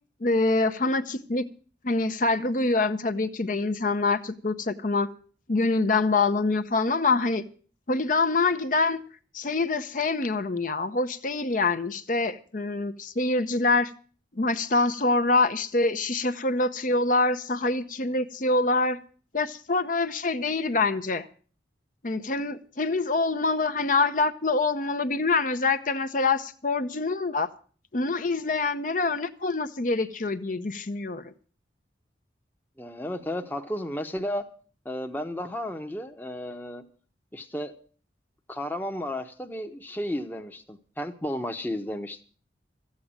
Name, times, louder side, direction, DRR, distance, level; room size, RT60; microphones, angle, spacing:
voice 1, 0.2-1.5 1.8-5.1 5.5-7.4 7.9-9.0 9.3-13.9 14.3-19.0 19.3-21.3 22.0-27.5 27.9-31.3, left 3 dB, 45° left, 0.7 m, -25 dB
voice 2, 32.8-34.4 34.8-36.8 37.3-37.7 38.5-42.2, left 1 dB, 10° left, 0.9 m, -33 dB
14.0 x 8.6 x 8.7 m
head